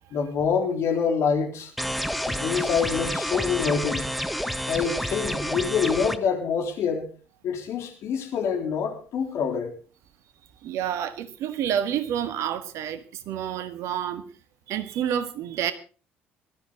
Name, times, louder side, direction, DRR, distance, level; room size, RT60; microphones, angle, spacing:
voice 1, 0.1-1.7 2.3-4.1 4.6-7.1 7.4-9.7, left 6 dB, 55° left, 4 dB, 3.6 m, -26 dB
sound 1, 1.8-6.2, equal, ahead, 1.2 m, -29 dB
voice 2, 10.6-14.2 14.7-15.7, right 9 dB, 60° right, 12 dB, 1.6 m, -29 dB
18.5 x 13.0 x 3.9 m, 0.37 s
figure-of-eight pair, 55°, 6 cm